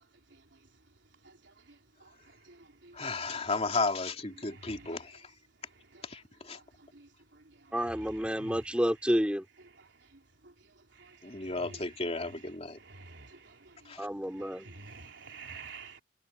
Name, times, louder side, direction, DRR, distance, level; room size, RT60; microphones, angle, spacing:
voice 1, 2.9-5.1 6.0-6.6 11.2-12.8 13.9-14.1, left 3 dB, 35° left, 3.4 m, -34 dB
voice 2, 4.5-4.9 5.9-6.0 6.9-7.1 8.4-8.6 10.4-10.5 11.0-11.8 12.3-12.4 12.8-13.7 14.6-16.0, right 4 dB, 70° right, 3.7 m, -49 dB
voice 3, 7.7-9.4 14.0-14.7, equal, 5° right, 5.0 m, -30 dB
head